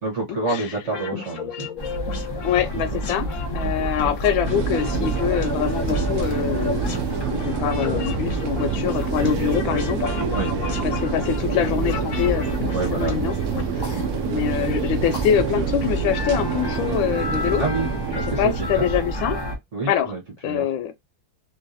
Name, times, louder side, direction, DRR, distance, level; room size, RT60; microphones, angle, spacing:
voice 1, 0.0-1.7 2.5-2.8 3.6-3.9 10.3-10.5 12.7-13.1 17.6-17.9 18.1-18.9 19.7-20.7, right 3 dB, 40° right, 1.2 m, -28 dB
sound 1, 0.8-13.6, left 6 dB, 55° left, 0.9 m, -34 dB
sound 2, 1.8-19.6, right 1 dB, 40° left, 0.3 m, -29 dB
voice 2, 2.4-3.3 3.5-7.0 7.3-10.1 10.8-13.4 14.2-17.6 18.1-19.4 19.9-20.1 20.4-20.9, left 9 dB, 80° left, 1.3 m, -24 dB
sound 3, 4.4-19.2, right 9 dB, 75° right, 0.8 m, -28 dB
3.2 x 2.8 x 2.5 m
omnidirectional pair, 2.2 m